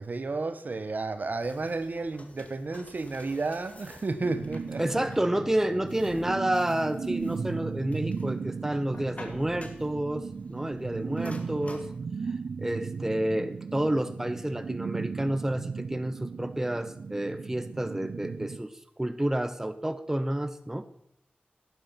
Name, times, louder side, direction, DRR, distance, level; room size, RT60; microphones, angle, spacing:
voice 1, 0.0-4.8, right 3 dB, 55° right, 11 dB, 1.2 m, -32 dB
sound 1, 1.4-12.0, left 2 dB, 40° left, 2.2 m, -51 dB
sound 2, 4.2-18.6, right 5 dB, 85° right, 0.4 m, -36 dB
voice 2, 4.8-11.9 12.6-18.7 19.0-20.8, right 1 dB, 10° right, 10 dB, 0.8 m, -29 dB
16.5 x 9.5 x 5.8 m, 0.72 s
wide cardioid pair, 95°, 3 cm